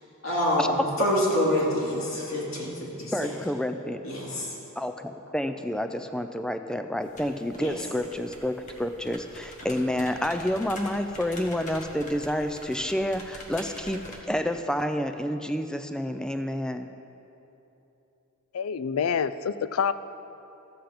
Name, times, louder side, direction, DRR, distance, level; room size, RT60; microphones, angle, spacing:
voice 1, 0.2-3.3 4.0-4.5 7.6-7.8, left 1 dB, 70° left, -5 dB, 2.7 m, -27 dB
voice 2, 3.1-4.0 4.8-16.9, equal, 5° left, 8 dB, 0.4 m, -29 dB
sound 1, 7.0-14.2, left 1 dB, 35° left, 1.2 m, -45 dB
voice 3, 18.5-19.9, left 7 dB, 85° left, 14 dB, 0.4 m, -27 dB
13.0 x 7.9 x 5.1 m, 3.0 s
head